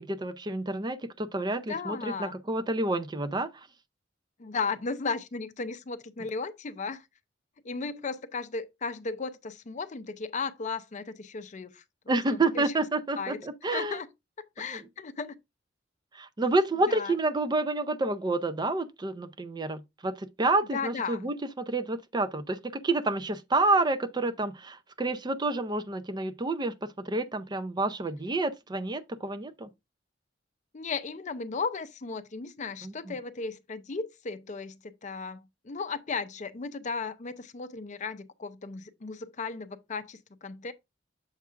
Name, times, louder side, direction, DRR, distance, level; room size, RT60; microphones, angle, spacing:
voice 1, 0.0-3.5 12.1-14.0 14.6-14.8 16.1-29.7 32.8-33.1, right 2 dB, 25° right, 0.5 m, -29 dB
voice 2, 1.6-2.4 4.4-7.1 7.6-12.7 13.2-13.4 13.7-14.1 14.4-15.4 16.9-17.2 20.7-21.3 30.7-40.7, left 4 dB, 40° left, 0.5 m, -35 dB
7.2 x 2.4 x 5.6 m
head